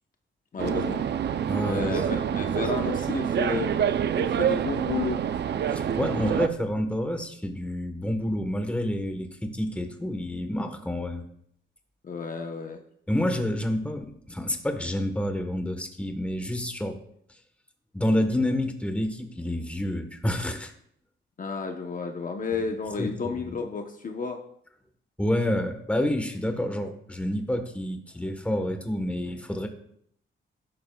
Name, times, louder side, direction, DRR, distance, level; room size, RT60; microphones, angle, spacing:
voice 1, 0.5-1.1 1.6-3.7 4.1-5.2 12.0-12.8 21.4-24.4, left 5 dB, 40° left, 4 dB, 1.0 m, -32 dB
sound 1, 0.6-6.5, right 9 dB, 60° right, 0.6 m, -27 dB
voice 2, 1.5-2.6 5.7-11.2 13.1-17.0 17.9-20.7 23.0-23.6 25.2-29.7, left 1 dB, 5° left, 5 dB, 1.3 m, -29 dB
13.5 x 12.0 x 2.4 m, 0.68 s
wide cardioid pair, 130°, 20 cm